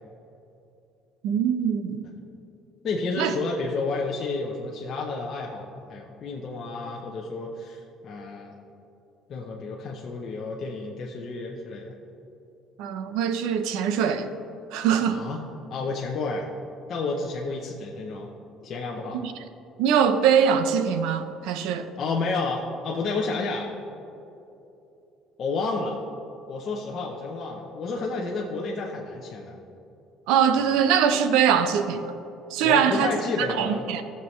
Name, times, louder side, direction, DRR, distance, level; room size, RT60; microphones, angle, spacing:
voice 1, 1.2-2.0 3.2-3.3 12.8-14.3 14.7-15.2 19.2-19.3 19.8-21.9 30.3-32.1 32.5-34.0, right 8 dB, 75° right, 9 dB, 0.7 m, -22 dB
voice 2, 2.8-8.5 9.3-11.9 15.1-15.4 15.7-16.5 16.9-18.3 18.6-19.2 21.5-21.6 22.0-23.7 25.4-26.0 26.5-29.6 32.6-33.9, left 3 dB, 35° left, -2 dB, 0.7 m, -30 dB
17.0 x 6.8 x 3.2 m, 2.9 s
cardioid pair, 180°, 0 cm